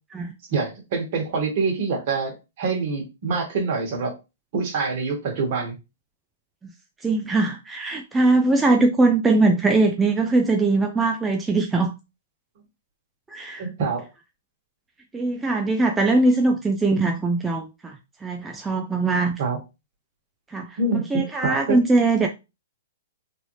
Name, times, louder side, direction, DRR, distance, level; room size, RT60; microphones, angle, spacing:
voice 1, 0.5-4.1 4.5-5.7 13.6-14.0 19.4-19.6 20.8-21.8, right 4 dB, 50° right, 1.4 m, -25 dB
voice 2, 7.0-11.9 13.3-13.7 15.1-19.3 20.5-22.3, right 3 dB, 10° right, 0.3 m, -21 dB
3.1 x 2.7 x 3.0 m
hypercardioid pair, 145°, 0 cm